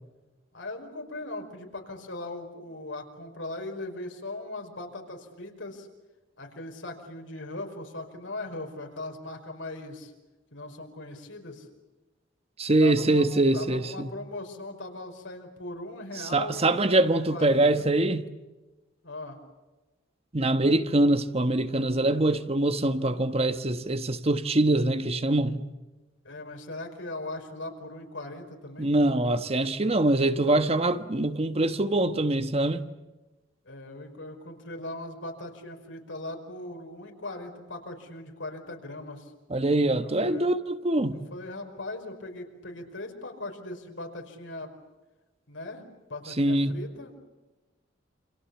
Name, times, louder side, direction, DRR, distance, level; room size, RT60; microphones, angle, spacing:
voice 1, 0.5-5.9 6.4-10.1 10.5-11.7 12.8-13.3 13.5-16.9 17.3-17.9 19.0-19.4 26.2-28.9 33.7-39.3 40.0-40.5 41.3-44.7 45.5-45.8 46.1-47.1, left 2 dB, 85° left, 5.3 m, -39 dB
voice 2, 12.6-14.1 16.1-18.3 20.3-25.6 28.8-32.9 39.5-41.2 46.4-46.8, right 2 dB, 35° right, 1.2 m, -24 dB
29.0 x 27.5 x 7.2 m
head